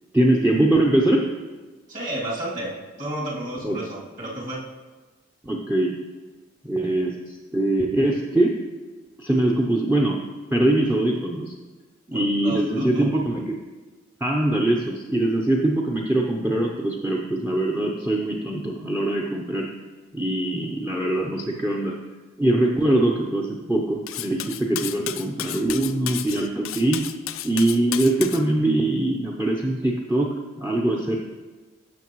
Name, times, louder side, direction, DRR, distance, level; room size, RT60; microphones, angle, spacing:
voice 1, 0.1-1.3 3.6-3.8 5.4-6.0 6.6-8.5 9.2-10.2 10.5-11.5 12.1-13.4 14.2-19.7 20.1-22.0 22.4-27.0 27.4-30.3 30.6-31.2, right 1 dB, 10° right, -1 dB, 0.6 m, -22 dB
voice 2, 1.9-4.6 12.1-13.0, right 1 dB, 40° right, -5 dB, 2.6 m, -31 dB
Cutlery silverware, 24.1-28.4, left 13 dB, 85° left, 0.4 m, -32 dB
15.5 x 6.4 x 3.1 m, 1.3 s
head